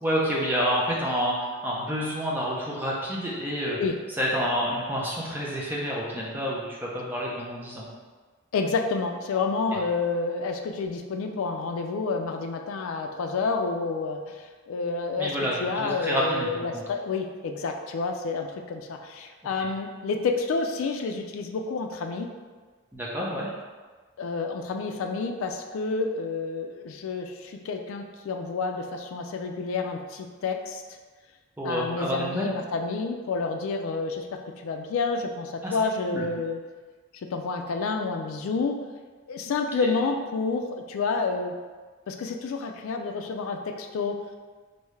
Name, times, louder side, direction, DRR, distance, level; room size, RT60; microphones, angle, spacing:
voice 1, 0.0-3.8 4.2-7.8 15.2-16.8 22.9-23.5 31.6-32.5 35.6-35.7 36.1-36.2, equal, 10° right, -5 dB, 0.5 m, -28 dB
voice 2, 3.6-4.0 8.5-15.3 15.6-22.3 24.2-30.8 31.6-36.6 37.3-38.8 39.3-41.6 42.1-44.2, left 4 dB, 80° left, 4 dB, 0.3 m, -29 dB
3.4 x 2.6 x 3.1 m, 1.4 s
head